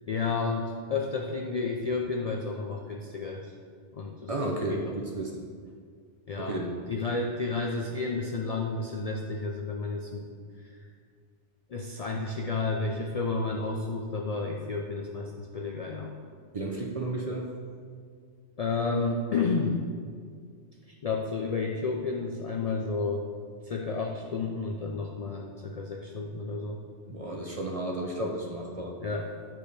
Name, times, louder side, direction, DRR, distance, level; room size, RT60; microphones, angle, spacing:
voice 1, 0.1-3.5 3.9-4.3 4.7-5.0 6.3-6.6 6.9-10.3 10.6-10.8 11.7-16.1 18.6-19.8 20.9-23.2 23.6-26.8 29.0-29.3, left 4 dB, 60° left, 0 dB, 0.4 m, -31 dB
voice 2, 4.3-5.4 6.4-6.8 16.5-17.5 27.1-28.9, right 1 dB, 45° right, 0 dB, 0.5 m, -32 dB
10.0 x 3.4 x 3.2 m, 2.1 s
omnidirectional pair, 1.1 m